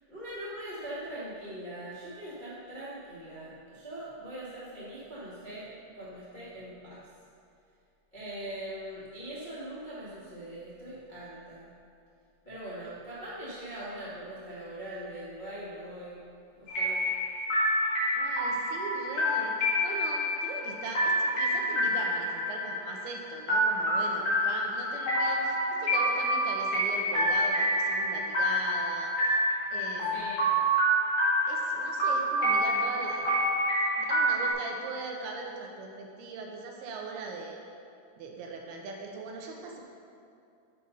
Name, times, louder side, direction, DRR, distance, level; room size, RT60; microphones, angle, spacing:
voice 1, 0.1-7.0 8.1-11.7 12.4-16.2 16.6-17.1 30.1-30.5, right 1 dB, 75° left, -11 dB, 0.4 m, -41 dB
sound 1, 16.7-34.5, equal, 45° left, 2.5 m, -28 dB
voice 2, 18.2-19.5 19.8-29.1 29.7-30.4 31.5-33.4 34.0-37.6 38.2-39.8, right 3 dB, 75° right, 1 dB, 2.7 m, -40 dB
7.6 x 5.5 x 5.5 m, 2.5 s
omnidirectional pair, 4.7 m